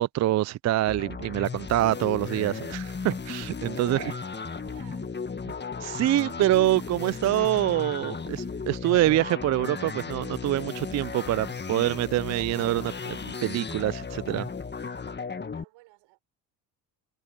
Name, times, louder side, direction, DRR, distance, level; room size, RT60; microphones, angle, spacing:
voice 1, 0.0-4.1 5.5-5.6 5.8-14.5, right 14 dB, 40° right, 0.4 m, -26 dB
sound 1, 0.9-15.6, left 5 dB, 25° left, 1.7 m, -35 dB
voice 2, 3.6-5.2 15.5-16.2, right 22 dB, 75° right, 6.8 m, -54 dB
hypercardioid pair, 65°, 45 cm